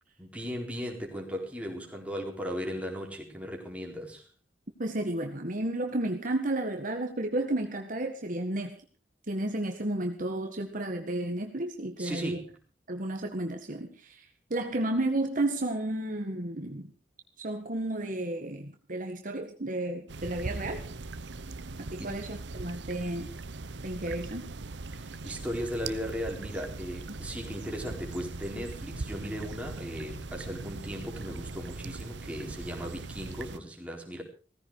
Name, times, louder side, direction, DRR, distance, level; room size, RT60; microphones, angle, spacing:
voice 1, 0.2-4.2 12.0-12.5 22.0-22.1 24.9-34.2, equal, 5° right, 0 dB, 4.2 m, -37 dB
voice 2, 4.8-8.8 9.3-12.4 12.9-16.9 17.4-20.8 21.9-23.3 23.8-24.4, right 1 dB, 45° right, 4 dB, 1.8 m, -32 dB
sound 1, 20.1-33.6, right 3 dB, 70° right, 0.9 m, -40 dB
17.0 x 15.5 x 4.9 m, 0.37 s
head